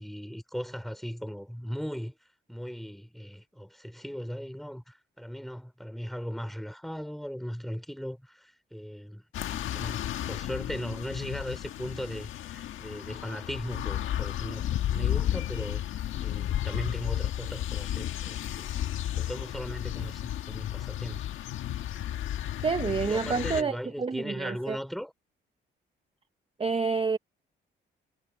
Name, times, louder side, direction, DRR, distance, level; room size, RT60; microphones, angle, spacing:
voice 1, 0.0-2.2 2.5-9.2 9.5-18.7 19.1-21.2 23.1-25.1, equal, ahead, 4.7 m, -38 dB
sound 1, 9.3-23.6, left 12 dB, 80° left, 1.6 m, -33 dB
voice 2, 22.6-24.8 26.6-27.2, right 5 dB, 30° right, 0.9 m, -28 dB
cardioid pair, 90°, 20 cm